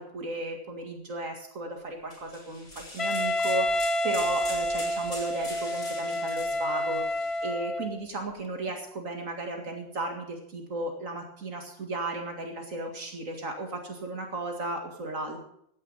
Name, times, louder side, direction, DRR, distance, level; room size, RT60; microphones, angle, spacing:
voice 1, 0.0-15.4, right 2 dB, 70° right, 2 dB, 2.4 m, -35 dB
sound 1, 2.1-7.5, left 1 dB, 75° left, 6.0 m, -43 dB
Wind instrument woodwind instrument, 3.0-8.0, left 1 dB, 30° left, 0.7 m, -29 dB
16.5 x 10.5 x 5.6 m, 0.73 s
omnidirectional pair, 1.4 m